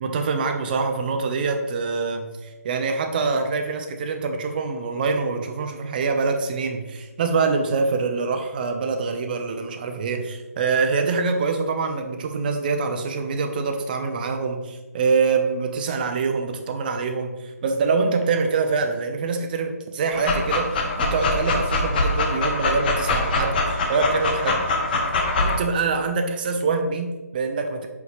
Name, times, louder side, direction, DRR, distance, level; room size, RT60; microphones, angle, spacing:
voice 1, 0.0-24.6 25.4-27.9, right 4 dB, 35° right, 5 dB, 0.7 m, -25 dB
Dog, 20.1-25.6, left 2 dB, 35° left, 1.0 m, -23 dB
5.2 x 4.6 x 4.9 m, 1.2 s
figure-of-eight pair, 150°, 9 cm